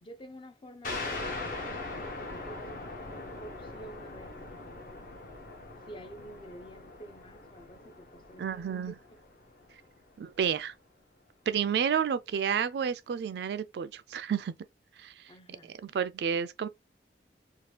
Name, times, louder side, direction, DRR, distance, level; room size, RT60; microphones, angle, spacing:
voice 1, 0.0-4.8 5.9-8.9 15.3-15.7, right 1 dB, 30° left, 0.4 m, -50 dB
sound 1, 0.8-10.1, left 2 dB, 50° left, 0.9 m, -41 dB
voice 2, 8.4-8.9 10.2-10.7 11.5-14.5 15.0-15.3 15.8-16.7, right 7 dB, 65° right, 0.3 m, -30 dB
2.8 x 2.3 x 3.1 m
head